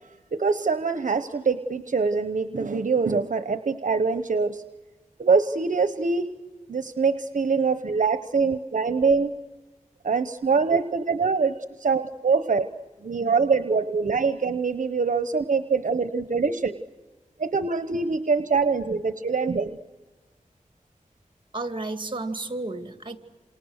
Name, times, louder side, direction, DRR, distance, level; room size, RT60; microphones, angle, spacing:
voice 1, 0.3-4.6 5.2-6.3 6.7-9.3 10.0-11.5 11.8-12.7 13.0-16.8 17.4-19.8, right 4 dB, 65° right, 10 dB, 0.9 m, -24 dB
voice 2, 21.5-23.2, right 2 dB, 35° right, 7 dB, 2.5 m, -32 dB
28.0 x 28.0 x 6.5 m, 1.3 s
wide cardioid pair, 75°, 14 cm